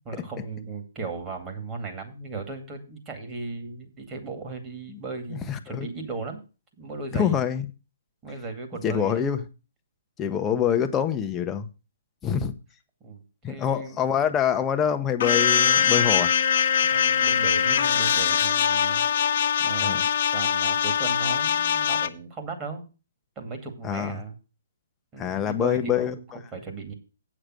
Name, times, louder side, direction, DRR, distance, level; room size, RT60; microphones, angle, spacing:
voice 1, 0.0-6.4 6.8-7.4 8.2-9.2 12.2-12.4 13.0-14.0 16.9-22.9 23.4-24.4 25.1-26.2 26.5-26.9, right 4 dB, 20° right, 2.3 m, -36 dB
voice 2, 5.3-5.9 7.1-7.7 8.8-9.5 10.2-11.7 12.2-12.5 13.4-16.3 19.8-20.1 23.8-24.2 25.2-26.4, left 8 dB, 15° left, 0.8 m, -25 dB
Marcato Trupet, 15.2-22.1, left 7 dB, 50° left, 0.9 m, -22 dB
8.6 x 6.6 x 6.2 m
hypercardioid pair, 150°, 0 cm